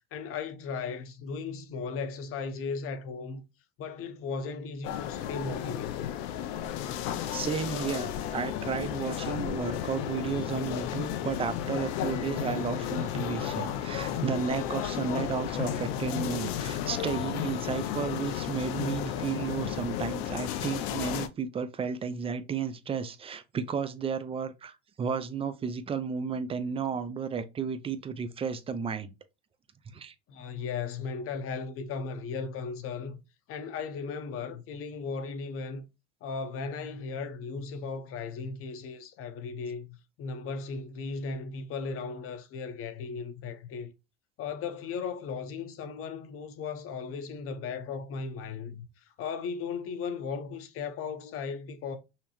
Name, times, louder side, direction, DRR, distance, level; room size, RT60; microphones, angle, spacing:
voice 1, 0.0-3.4 3.8-6.1 30.3-33.2 33.5-35.8 36.2-43.9 44.4-52.0, left 5 dB, 50° left, 0.8 m, -36 dB
sound 1, 4.8-21.3, left 10 dB, 85° left, 0.5 m, -33 dB
voice 2, 7.3-29.1 29.9-30.1, right 6 dB, 20° right, 0.3 m, -33 dB
5.6 x 2.0 x 2.9 m
cardioid pair, 125°, 29 cm